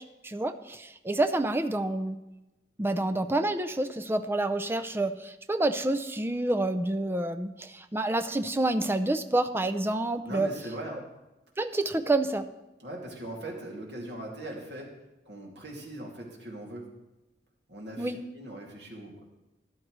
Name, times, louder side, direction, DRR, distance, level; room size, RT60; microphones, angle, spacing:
voice 1, 0.0-2.2 2.8-10.5 11.6-12.5 18.0-18.2, right 2 dB, 15° right, 9 dB, 0.4 m, -28 dB
voice 2, 10.2-11.1 12.8-14.9 15.3-16.9 17.7-19.2, right 1 dB, 75° right, -2 dB, 2.6 m, -40 dB
13.5 x 11.0 x 3.2 m, 1.0 s
head